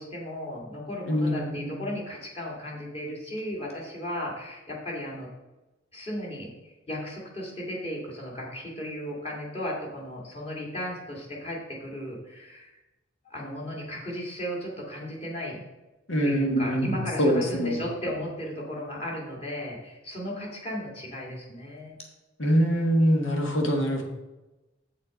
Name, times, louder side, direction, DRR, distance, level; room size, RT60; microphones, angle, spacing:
voice 1, 0.0-5.3 5.9-12.7 13.2-15.6 16.2-22.0, equal, 30° left, -3 dB, 2.2 m, -35 dB
voice 2, 1.1-1.8 16.1-17.8 22.4-24.0, equal, 85° left, 2 dB, 1.6 m, -24 dB
7.6 x 6.5 x 5.0 m, 1.1 s
head